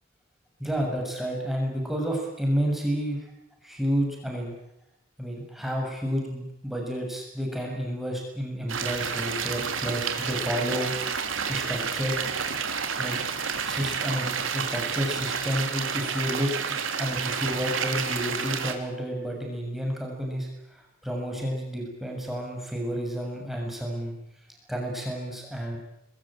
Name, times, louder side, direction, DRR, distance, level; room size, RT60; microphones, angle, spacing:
voice 1, 0.6-3.2 3.6-4.5 5.2-10.9 11.5-12.2 13.0-13.2 13.7-16.5 17.0-20.5 21.0-24.1 24.7-25.8, equal, ahead, 0 dB, 6.9 m, -30 dB
sound 1, 8.7-18.7, right 6 dB, 80° right, 3.1 m, -30 dB
27.0 x 21.5 x 8.9 m, 0.85 s
head